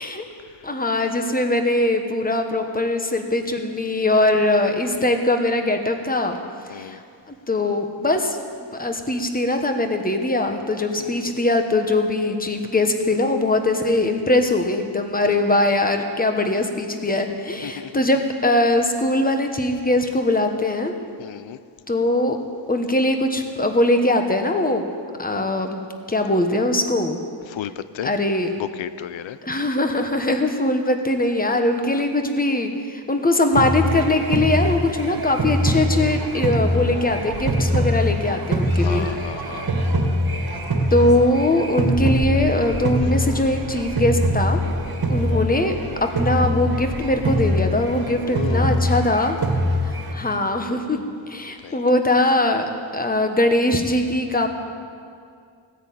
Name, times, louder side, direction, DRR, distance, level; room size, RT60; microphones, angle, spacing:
voice 1, 0.6-6.4 6.7-7.0 7.5-8.4 8.7-20.9 21.9-22.4 22.7-24.9 25.2-25.8 26.1-27.2 28.0-28.5 29.4-39.1 40.9-44.6 45.1-45.7 46.0-49.4 50.1-51.0 51.3-52.6 52.9-54.5, left 1 dB, 20° left, 5 dB, 1.2 m, -21 dB
voice 2, 6.7-7.0 11.0-11.1 15.2-15.6 17.6-17.9 21.2-21.6 27.5-28.1 28.5-29.4 31.9-32.1 38.7-39.7 45.0-45.3 48.1-48.9 51.6-51.8, left 11 dB, 90° left, 14 dB, 0.6 m, -34 dB
sound 1, 33.5-50.1, equal, 55° right, 1.8 m, -23 dB
16.5 x 10.0 x 8.5 m, 2.2 s
wide cardioid pair, 145°, 44 cm